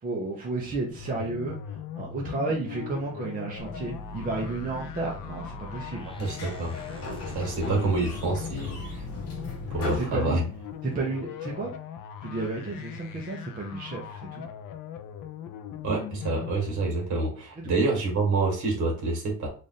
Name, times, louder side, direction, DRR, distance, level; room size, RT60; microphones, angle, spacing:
voice 1, 0.0-1.6 2.0-6.1 9.9-10.4 10.8-11.7 12.2-14.4 17.6-17.7, right 3 dB, 25° right, -2 dB, 0.7 m, -32 dB
sound 1, 0.9-16.9, left 9 dB, 75° left, 0.6 m, -40 dB
sound 2, 3.6-9.8, left 1 dB, 15° left, 0.5 m, -42 dB
Sliding door, 6.1-10.9, left 3 dB, 50° left, 1.1 m, -39 dB
voice 2, 6.2-6.8 7.3-9.0 9.7-10.4 15.8-19.5, right 3 dB, 60° right, 0 dB, 1.8 m, -27 dB
3.3 x 2.5 x 4.0 m, 0.40 s
cardioid pair, 170°, 33 cm